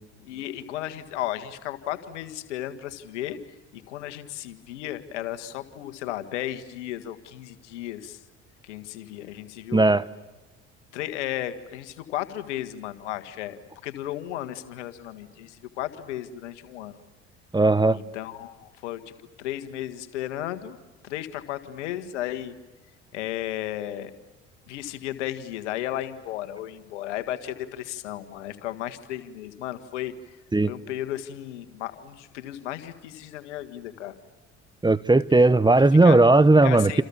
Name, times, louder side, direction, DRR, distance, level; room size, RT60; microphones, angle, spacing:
voice 1, 0.2-3.4 3.7-8.2 8.6-9.8 10.9-17.0 17.9-19.0 19.4-20.8 21.0-22.5 23.1-24.1 24.7-30.1 30.7-34.1 35.3-35.4 36.0-36.2 36.6-37.0, left 13 dB, 85° left, 1.8 m, -34 dB
voice 2, 9.7-10.0 17.5-18.0 30.5-30.7 34.8-37.0, right 2 dB, 10° right, 1.0 m, -17 dB
29.0 x 28.0 x 7.2 m
hypercardioid pair, 65°, 35 cm